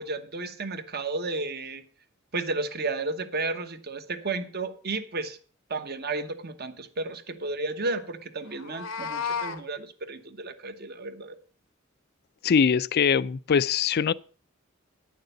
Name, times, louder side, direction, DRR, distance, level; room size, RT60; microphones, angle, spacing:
voice 1, 0.0-1.8 2.3-5.4 5.7-11.3, right 3 dB, 50° right, 1.2 m, -33 dB
Meow, 8.5-9.6, left 6 dB, 85° left, 1.1 m, -32 dB
voice 2, 12.4-14.1, left 6 dB, 50° left, 0.4 m, -22 dB
10.0 x 6.6 x 6.7 m
head